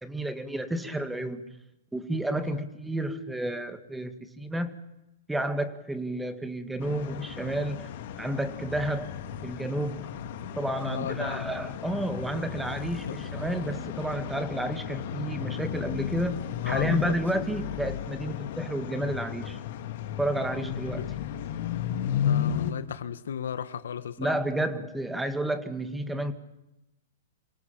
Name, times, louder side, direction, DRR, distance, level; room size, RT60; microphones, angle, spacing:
voice 1, 0.0-1.4 1.9-4.7 5.3-7.9 8.2-9.1 9.4-10.1 10.6-19.6 20.2-21.1 24.2-26.3, right 1 dB, 5° right, 1.8 m, -31 dB
sound 1, 6.8-22.7, left 9 dB, 55° left, 2.4 m, -34 dB
voice 2, 10.8-11.5 13.0-13.2 16.6-17.2 20.7-21.1 22.2-24.4, left 8 dB, 80° left, 1.7 m, -35 dB
26.5 x 18.0 x 7.2 m
hypercardioid pair, 140°, 0 cm